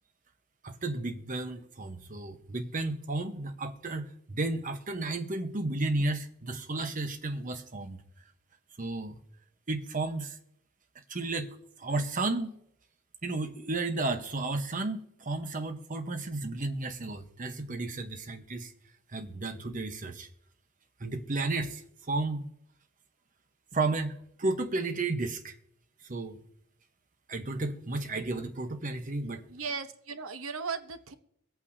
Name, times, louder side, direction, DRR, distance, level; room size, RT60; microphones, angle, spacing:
voice 1, 0.6-8.0 8.8-9.2 9.7-10.4 11.1-12.5 13.2-18.7 19.1-20.3 21.0-22.5 23.7-25.5 26.1-26.4 27.3-29.4, right 2 dB, 40° right, 1.0 m, -33 dB
voice 2, 29.5-31.1, right 5 dB, 75° right, 1.0 m, -36 dB
23.5 x 8.6 x 2.7 m
head